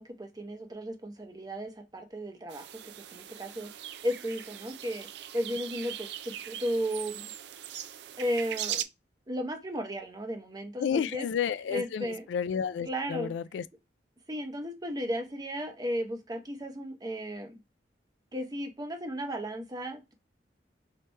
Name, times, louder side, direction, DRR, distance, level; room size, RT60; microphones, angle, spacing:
voice 1, 0.0-3.7 4.0-5.1 5.3-7.3 8.2-8.8 9.3-11.3 11.7-12.3 12.9-13.3 14.3-17.5 18.3-20.1, equal, 20° right, 0.7 m, -35 dB
sound 1, 2.5-8.8, right 11 dB, 65° right, 0.4 m, -40 dB
voice 2, 10.8-13.6, left 7 dB, 85° left, 0.3 m, -31 dB
3.3 x 2.9 x 3.2 m
head